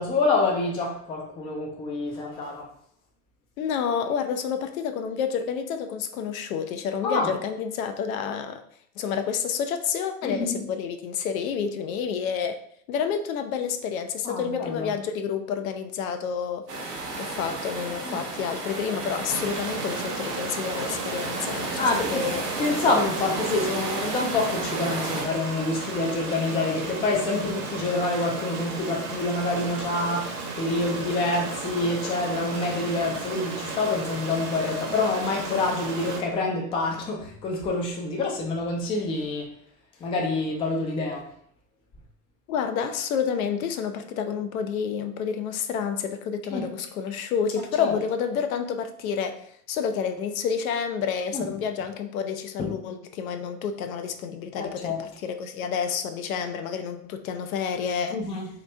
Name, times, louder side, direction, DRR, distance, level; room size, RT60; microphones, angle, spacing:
voice 1, 0.0-2.7 7.0-7.3 10.2-10.6 14.2-14.9 18.0-18.2 21.8-22.3 22.6-39.5 40.0-41.3 46.5-46.7 47.8-47.9 51.3-51.5 52.6-52.8 54.6-55.0 58.1-58.5, left 3 dB, 15° left, 1 dB, 0.4 m, -27 dB
voice 2, 3.6-8.6 9.0-12.6 12.9-16.6 17.2-22.4 42.5-58.2, left 7 dB, 60° left, 7 dB, 0.5 m, -29 dB
sound 1, 16.7-25.2, right 3 dB, 80° right, 0.9 m, -33 dB
Stream, 19.3-36.2, right 3 dB, 35° right, 0.9 m, -34 dB
3.0 x 2.5 x 3.2 m, 0.63 s
figure-of-eight pair, 90°, 47 cm